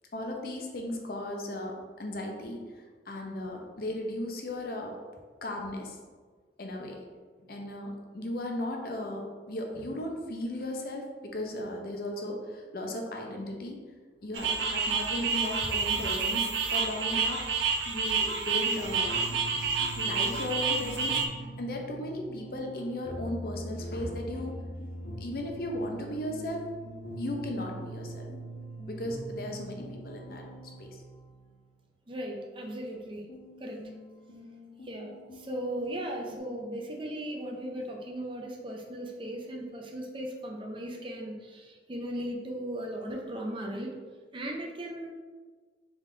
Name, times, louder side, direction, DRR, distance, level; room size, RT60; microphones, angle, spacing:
voice 1, 0.1-5.0 5.4-5.9 6.6-7.0 7.4-13.8 14.2-17.4 17.9-19.1 19.9-21.2 21.6-24.5 25.2-26.7 27.2-28.3 28.9-31.0, left 1 dB, 55° left, 1 dB, 0.6 m, -36 dB
sound 1, 14.3-21.3, right 5 dB, 75° right, 0.5 m, -29 dB
sound 2, 18.8-31.6 33.3-36.4, right 1 dB, 70° left, 1.1 m, -42 dB
voice 2, 32.1-33.3 33.6-33.8 34.8-44.0 44.3-45.1, right 1 dB, 30° right, 1 dB, 0.5 m, -37 dB
3.7 x 3.6 x 3.7 m, 1.5 s
head